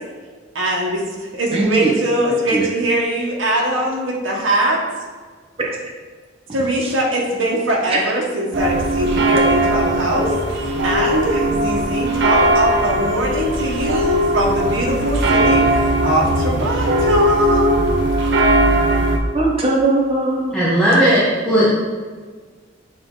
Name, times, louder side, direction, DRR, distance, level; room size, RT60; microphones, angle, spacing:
voice 1, 0.5-4.8 6.5-15.6 16.0-17.8, right 1 dB, 85° right, -3 dB, 1.2 m, -21 dB
voice 2, 1.5-1.9 2.5-2.7 6.8-6.9 19.3-20.5, right 2 dB, 30° right, -3 dB, 0.9 m, -19 dB
sound 1, 8.5-19.2, right 1 dB, 60° right, 0.8 m, -18 dB
voice 3, 20.5-21.7, equal, 5° left, -9 dB, 1.2 m, -15 dB
7.6 x 3.8 x 3.8 m, 1.5 s
head